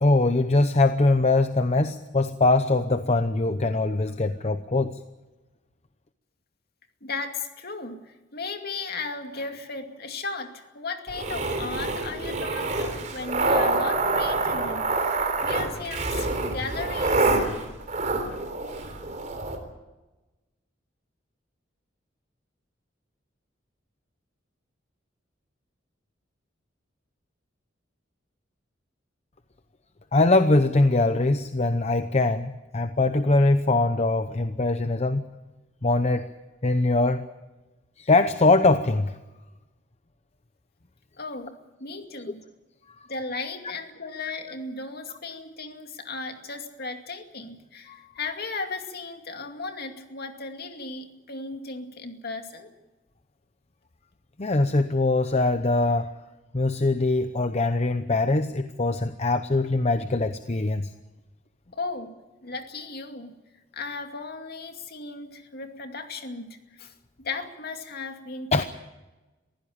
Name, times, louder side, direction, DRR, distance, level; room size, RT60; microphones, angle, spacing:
voice 1, 0.0-5.0 30.1-35.2 35.8-36.3 36.6-37.2 38.0-39.2 47.9-48.0 54.4-56.1 56.5-60.9 68.5-68.6, left 2 dB, 35° left, 9 dB, 0.8 m, -22 dB
voice 2, 7.0-17.4 41.2-42.4 43.1-52.7 61.7-62.1 62.4-63.4 63.7-68.6, left 3 dB, 55° left, 5 dB, 2.4 m, -36 dB
sound 1, 11.1-19.6, right 3 dB, 40° right, 3.7 m, -26 dB
23.0 x 15.5 x 8.7 m, 1.1 s
head